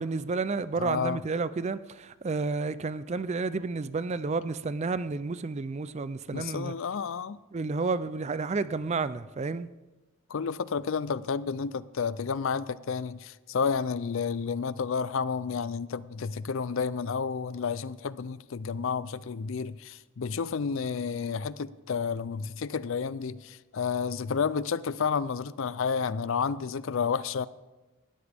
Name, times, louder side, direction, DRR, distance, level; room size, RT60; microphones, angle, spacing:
voice 1, 0.0-6.7 7.5-9.7, right 4 dB, 30° right, 0.4 m, -31 dB
voice 2, 0.8-1.2 6.3-7.4 10.3-27.5, left 6 dB, 60° left, 0.4 m, -31 dB
19.5 x 13.0 x 3.5 m
head